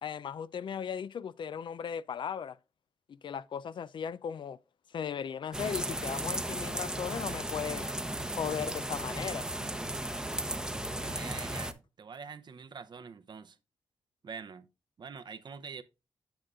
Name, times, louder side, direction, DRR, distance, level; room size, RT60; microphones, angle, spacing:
voice 1, 0.0-2.6 3.1-4.6 4.9-7.9 8.4-9.5, left 7 dB, 65° left, 0.3 m, -37 dB
sound 1, 5.5-11.7, right 1 dB, 5° right, 0.7 m, -35 dB
voice 2, 11.0-13.6 14.2-14.7 15.0-15.8, right 6 dB, 55° right, 0.6 m, -45 dB
8.7 x 7.5 x 2.4 m
cardioid pair, 75°, 9 cm